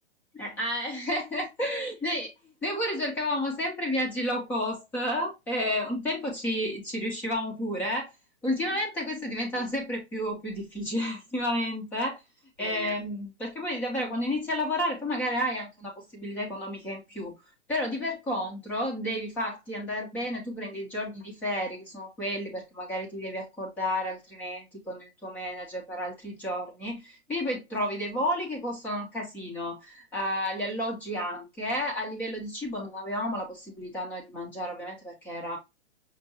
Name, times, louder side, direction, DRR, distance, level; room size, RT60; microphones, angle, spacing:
voice 1, 0.3-2.3 2.6-8.1 8.4-12.2 12.6-17.3 17.7-35.6, equal, 5° left, 0.3 m, -31 dB
5.4 x 2.2 x 2.7 m
hypercardioid pair, 145°, 35 cm